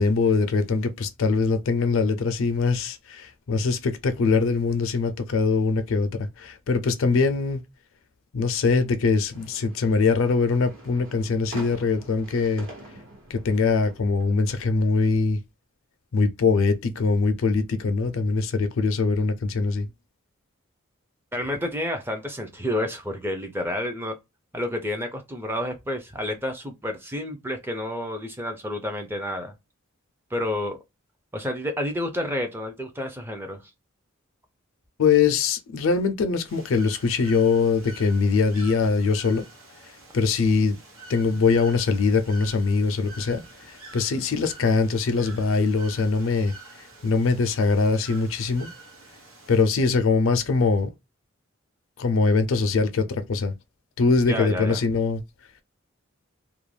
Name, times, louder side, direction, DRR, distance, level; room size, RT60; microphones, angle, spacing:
voice 1, 0.0-7.6 8.3-12.7 13.3-15.4 16.1-19.9 35.0-39.4 40.1-40.8 41.1-46.5 47.0-48.7 49.5-50.9 52.0-53.5 54.0-55.2, left 4 dB, 70° left, 0.4 m, -22 dB
sound 1, 9.3-14.7, right 1 dB, 70° right, 1.1 m, -45 dB
voice 2, 21.3-24.1 24.5-29.5 30.3-30.8 31.3-33.6 54.3-54.8, left 1 dB, 10° right, 0.4 m, -30 dB
Bird / Water, 36.5-49.6, right 3 dB, 90° right, 1.0 m, -47 dB
2.4 x 2.2 x 3.1 m
head